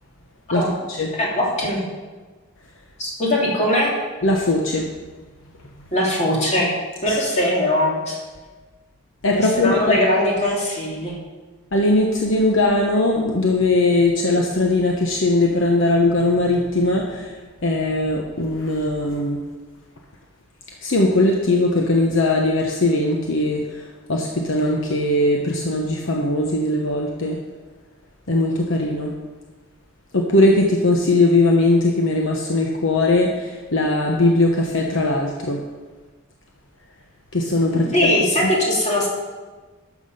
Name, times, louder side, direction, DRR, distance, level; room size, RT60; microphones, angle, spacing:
voice 1, 1.2-1.8 3.0-3.9 5.9-6.7 7.0-8.2 9.3-11.2 37.7-39.1, left 1 dB, 35° left, -3 dB, 3.0 m, -21 dB
voice 2, 4.2-4.8 9.2-10.0 11.7-17.2 17.6-19.4 20.8-23.6 24.1-27.4 28.3-29.1 30.1-33.3 33.7-35.6 37.3-37.8, left 2 dB, 65° left, 0 dB, 1.1 m, -19 dB
12.0 x 7.2 x 5.5 m, 1.3 s
head